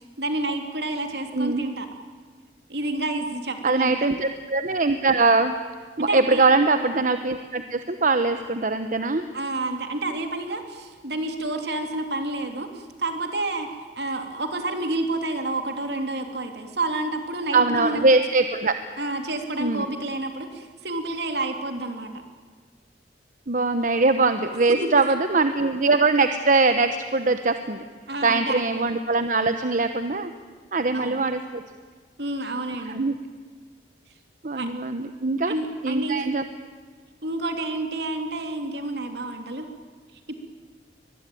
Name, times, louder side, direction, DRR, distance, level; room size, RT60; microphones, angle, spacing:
voice 1, 0.2-1.8 2.7-4.1 6.0-6.4 9.3-12.7 13.0-13.7 14.0-18.1 19.0-22.1 28.1-28.6 30.9-31.2 32.2-33.0 34.5-34.7 35.5-36.5 37.2-39.7 40.3-40.4, right 2 dB, 65° right, 5 dB, 3.1 m, -29 dB
voice 2, 3.6-5.5 6.0-9.2 17.5-18.7 19.6-19.9 23.5-27.8 28.2-30.3 30.7-31.6 32.9-33.2 34.4-35.5 35.8-36.4, right 3 dB, 50° right, 8 dB, 1.0 m, -22 dB
24.5 x 21.0 x 9.2 m, 1.5 s
head